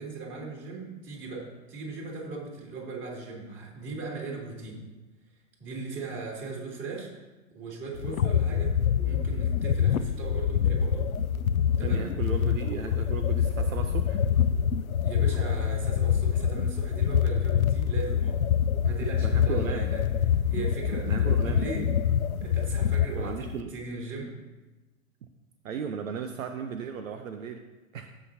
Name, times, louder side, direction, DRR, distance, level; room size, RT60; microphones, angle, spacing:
voice 1, 0.0-4.8 5.6-7.1 7.5-11.1 11.8-12.2 15.0-18.4 18.8-20.0 20.5-21.9 22.4-24.4, right 4 dB, 30° right, -2 dB, 2.9 m, -38 dB
sound 1, 8.0-23.6, left 8 dB, 90° left, 0.5 m, -26 dB
voice 2, 11.8-14.2 19.2-19.9 21.0-21.6 23.2-23.7 25.6-27.6 27.9-28.1, right 6 dB, 75° right, 7 dB, 0.8 m, -35 dB
16.0 x 6.0 x 2.8 m, 1.2 s
figure-of-eight pair, 100°, 41 cm